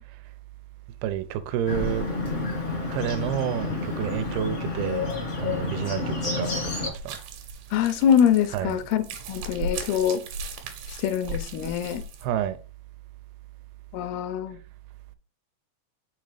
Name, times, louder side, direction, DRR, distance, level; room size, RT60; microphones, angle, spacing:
voice 1, 1.0-2.1 2.9-5.1 5.4-6.5 6.8-7.2 8.5-8.8 12.2-12.6, right 10 dB, 85° right, 2.6 m, -29 dB
Bird, 1.7-6.9, left 3 dB, 50° left, 0.8 m, -29 dB
sound 1, 6.9-12.3, right 2 dB, 70° right, 2.3 m, -37 dB
voice 2, 7.7-9.0 9.3-10.2 11.0-12.0 13.9-14.6, left 9 dB, 90° left, 2.7 m, -24 dB
6.3 x 3.9 x 4.8 m
omnidirectional pair, 4.4 m